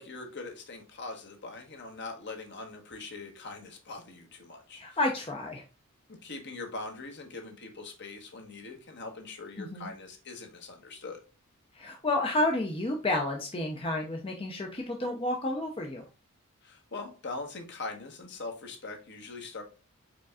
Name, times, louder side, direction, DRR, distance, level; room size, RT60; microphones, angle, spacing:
voice 1, 0.0-5.0 6.1-11.2 16.6-19.6, left 3 dB, 55° left, 3 dB, 1.3 m, -42 dB
voice 2, 4.8-5.6 9.6-9.9 11.7-16.0, left 2 dB, 25° left, 1 dB, 0.7 m, -30 dB
5.0 x 4.5 x 2.4 m, 0.34 s
head